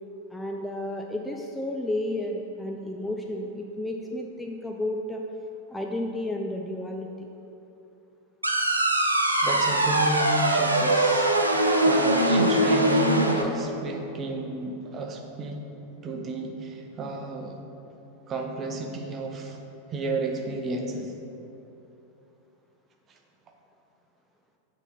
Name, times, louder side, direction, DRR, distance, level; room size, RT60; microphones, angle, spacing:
voice 1, 0.3-5.2 5.7-7.3, left 1 dB, 5° left, 1 dB, 0.4 m, -32 dB
sound 1, 8.4-13.4, right 1 dB, 85° right, 0.5 m, -22 dB
voice 2, 9.4-11.4 11.8-15.6 16.0-17.6 18.3-19.6 19.9-21.1, right 2 dB, 25° right, 2 dB, 0.7 m, -32 dB
7.9 x 4.1 x 4.2 m, 2.9 s
figure-of-eight pair, 90°, 0 cm